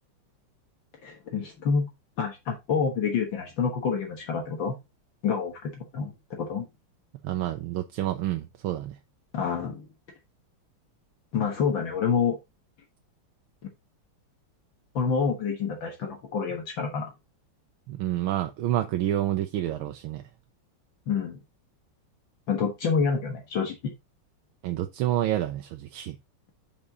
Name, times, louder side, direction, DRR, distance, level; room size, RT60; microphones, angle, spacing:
voice 1, 1.0-1.9 2.2-4.8 5.2-6.7 9.3-9.9 11.3-12.4 15.0-17.1 21.1-21.4 22.5-23.9, left 6 dB, 60° left, 2.0 m, -28 dB
voice 2, 7.2-9.0 17.9-20.3 24.6-26.2, right 13 dB, 75° right, 1.5 m, -28 dB
7.3 x 4.8 x 3.9 m
omnidirectional pair, 2.4 m